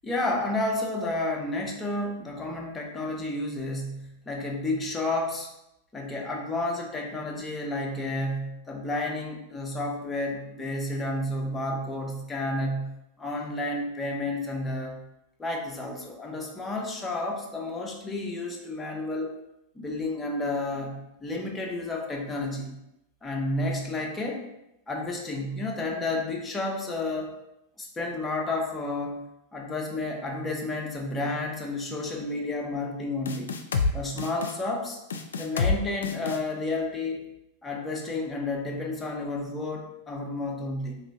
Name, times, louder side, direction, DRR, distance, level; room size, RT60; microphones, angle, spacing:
voice 1, 0.0-5.5 5.9-15.0 15.4-19.4 19.7-22.8 23.2-24.5 24.9-27.4 27.8-29.2 29.5-33.5 33.9-35.0 35.4-37.2 37.6-41.0, left 2 dB, 15° left, 0 dB, 0.9 m, -31 dB
sound 1, 33.3-33.9 34.2-34.5 35.1-35.8 36.0-36.4, left 4 dB, 75° left, 0.4 m, -27 dB
3.8 x 3.1 x 3.5 m, 0.87 s
hypercardioid pair, 95°, 0 cm